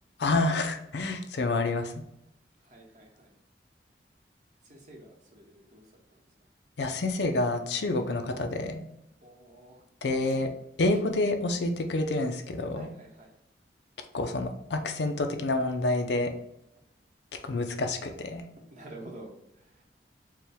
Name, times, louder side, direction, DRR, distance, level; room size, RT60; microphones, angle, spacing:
voice 1, 0.2-1.9 6.8-8.8 10.0-10.5 10.8-12.9 14.1-16.3 17.4-18.4, left 2 dB, 70° left, 6 dB, 0.5 m, -28 dB
voice 2, 2.6-3.4 4.6-6.2 9.2-9.8 10.3-10.4 10.9-11.0 12.2-12.3 12.7-13.3 18.7-19.8, right 1 dB, 40° right, -2 dB, 1.0 m, -49 dB
4.5 x 2.2 x 3.4 m, 0.80 s
head